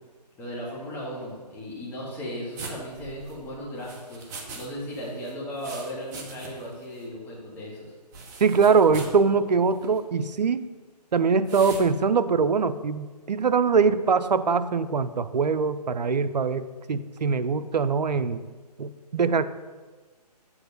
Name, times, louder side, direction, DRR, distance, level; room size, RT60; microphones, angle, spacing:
voice 1, 0.4-7.9, equal, 10° left, -6 dB, 1.7 m, -36 dB
sound 1, 2.6-4.7 4.9-6.7 7.0-7.1 8.1-9.2 9.7-10.0 11.5-11.9, right 3 dB, 25° right, 1.0 m, -41 dB
voice 2, 8.4-10.6 11.1-18.4 18.8-19.4, right 5 dB, 85° right, 13 dB, 0.5 m, -23 dB
7.3 x 4.5 x 6.6 m, 1.4 s
figure-of-eight pair, 150°, 21 cm